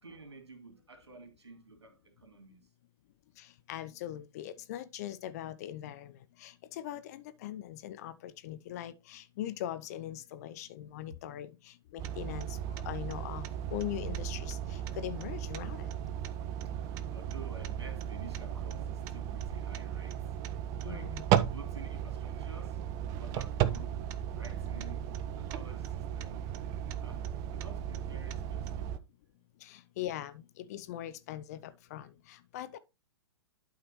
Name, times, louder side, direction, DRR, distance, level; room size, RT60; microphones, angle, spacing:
voice 1, 0.0-2.6 10.9-11.1 16.6-22.8 23.2-25.0 25.3-26.4 27.0-27.2 27.5-28.9 29.3-29.4, right 3 dB, 75° right, 2.8 m, -51 dB
voice 2, 3.4-12.6 12.8-15.9 20.8-21.5 29.6-32.8, left 12 dB, 35° left, 0.6 m, -41 dB
sound 1, 12.0-29.0, right 10 dB, 25° right, 0.5 m, -35 dB
11.5 x 4.8 x 3.1 m
figure-of-eight pair, 115°, 14 cm